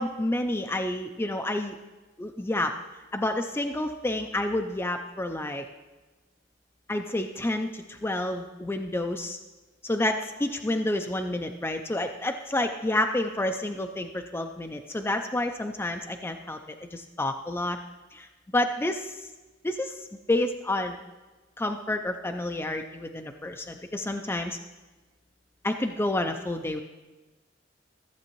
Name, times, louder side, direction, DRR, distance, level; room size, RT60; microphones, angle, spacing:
voice 1, 0.0-1.8 2.2-2.8 3.1-5.7 6.9-9.4 9.8-16.6 16.9-17.8 18.1-18.3 18.5-19.2 19.6-21.0 21.6-24.6 25.6-26.8, left 1 dB, 15° left, 5 dB, 0.4 m, -29 dB
14.5 x 7.8 x 3.0 m, 1.2 s
head